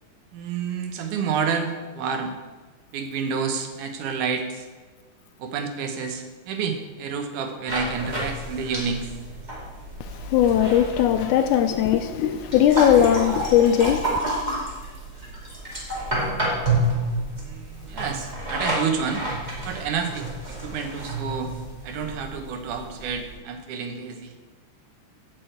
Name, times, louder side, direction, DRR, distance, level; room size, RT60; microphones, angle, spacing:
voice 1, 0.3-2.3 2.9-4.7 5.4-9.1 17.4-19.2 19.6-21.6 21.8-24.3, right 6 dB, 75° right, 2.5 m, -29 dB
sound 1, 7.7-23.4, right 1 dB, 15° right, 1.8 m, -30 dB
voice 2, 10.0-14.2, left 10 dB, 80° left, 1.9 m, -19 dB
8.7 x 6.2 x 7.9 m
omnidirectional pair, 3.8 m